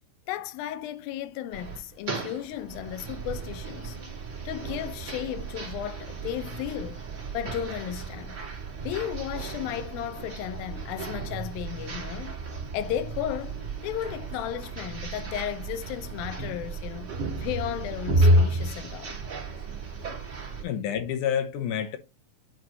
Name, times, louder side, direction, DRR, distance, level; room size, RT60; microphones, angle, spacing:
voice 1, 0.3-4.0 4.5-7.0 7.3-8.4 8.8-12.4 12.7-19.2, left 11 dB, 85° left, 2.4 m, -34 dB
sound 1, 1.5-20.6, right 1 dB, 30° right, 2.5 m, -31 dB
voice 2, 20.6-22.0, left 9 dB, 70° left, 2.3 m, -28 dB
9.2 x 4.3 x 3.1 m
omnidirectional pair, 4.1 m